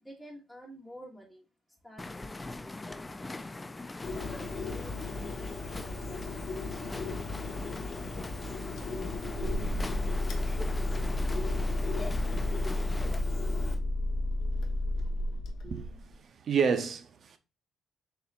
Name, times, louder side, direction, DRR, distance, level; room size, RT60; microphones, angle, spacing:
voice 1, 0.0-1.5 1.8-4.0 4.5-6.9, equal, ahead, 1.2 m, -51 dB
sound 1, 2.0-13.2, left 2 dB, 20° left, 0.3 m, -42 dB
Bird, 4.0-13.7, left 3 dB, 50° left, 1.2 m, -38 dB
sound 2, 8.8-16.1, left 1 dB, 70° left, 0.9 m, -31 dB
voice 2, 15.6-16.2 16.4-17.4, right 6 dB, 55° right, 0.7 m, -30 dB
6.7 x 2.9 x 2.4 m
cardioid pair, 90°, 0 cm